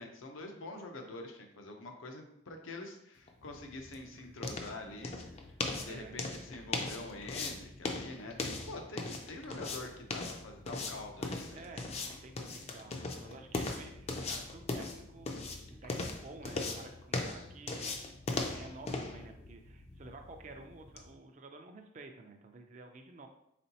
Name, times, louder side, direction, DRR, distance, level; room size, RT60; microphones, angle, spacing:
voice 1, 0.0-5.1 5.7-11.6, left 2 dB, 85° left, 3 dB, 0.7 m, -46 dB
sound 1, 3.3-21.1, left 3 dB, 30° left, 0.4 m, -39 dB
voice 2, 5.8-6.2 11.5-11.9 12.2-15.3 15.7-17.9 18.5-23.3, right 3 dB, 40° right, 4 dB, 0.4 m, -51 dB
4.2 x 3.7 x 2.8 m, 0.77 s
head